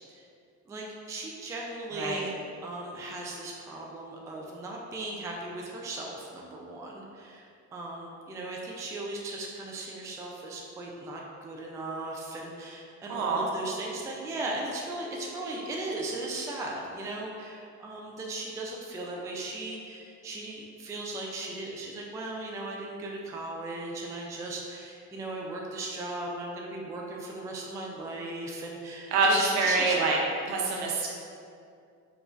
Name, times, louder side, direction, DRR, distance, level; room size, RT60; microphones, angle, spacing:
voice 1, 0.7-2.3 2.6-30.0, right 2 dB, 10° right, -1 dB, 0.3 m, -37 dB
voice 2, 13.1-13.5 29.1-30.2 30.5-31.1, right 3 dB, 65° right, -2 dB, 0.7 m, -25 dB
4.8 x 2.3 x 2.4 m, 2.4 s
figure-of-eight pair, 45°, 43 cm